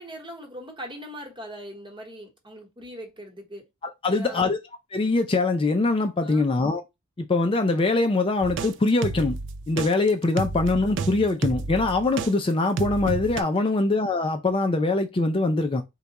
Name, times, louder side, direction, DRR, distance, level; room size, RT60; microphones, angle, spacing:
voice 1, 0.0-3.6 4.1-4.5 6.2-6.4 13.6-13.8, equal, 25° right, 1.1 m, -40 dB
voice 2, 4.0-4.6 4.9-6.8 7.2-9.4 9.7-15.8, left 3 dB, 25° left, 0.4 m, -23 dB
sound 1, 8.4-12.3 12.8-13.4, right 4 dB, 55° right, 0.4 m, -31 dB
4.6 x 2.2 x 4.0 m
head